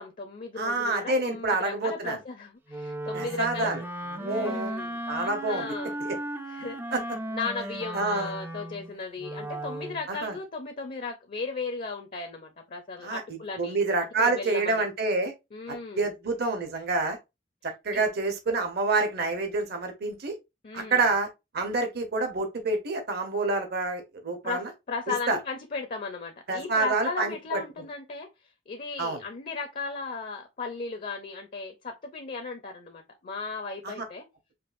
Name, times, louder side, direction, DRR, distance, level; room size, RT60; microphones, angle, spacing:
voice 1, 0.0-3.7 4.2-5.0 5.5-5.9 6.5-6.8 7.3-13.8 14.2-14.9 15.5-16.1 17.9-18.0 20.6-21.1 24.4-24.6 24.9-28.3 28.7-34.2, left 4 dB, 45° left, 0.5 m, -36 dB
voice 2, 0.6-2.2 3.1-3.8 4.1-4.7 5.1-5.7 6.0-6.1 6.9-7.0 7.9-8.3 10.1-10.4 13.0-15.3 15.7-17.2 17.6-20.3 20.7-21.3 21.5-24.7 25.3-25.4 26.5-27.6 29.0-29.2 33.8-34.0, right 3 dB, 55° right, 0.9 m, -28 dB
Wind instrument woodwind instrument, 2.7-10.0, right 1 dB, 10° right, 0.3 m, -36 dB
5.2 x 2.4 x 2.5 m
head